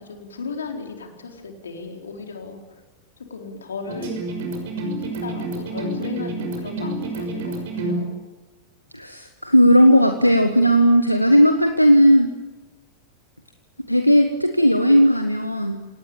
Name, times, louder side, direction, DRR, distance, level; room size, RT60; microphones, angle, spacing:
voice 1, 0.0-2.8 3.3-4.2 5.2-8.1, left 4 dB, 70° left, 3 dB, 4.2 m, -35 dB
sound 1, 3.9-8.0, right 2 dB, 55° right, 6.0 m, -28 dB
voice 2, 8.9-12.3 13.9-15.8, equal, 90° left, 7 dB, 1.4 m, -16 dB
27.5 x 18.5 x 8.9 m, 1.2 s
figure-of-eight pair, 90°, 0 cm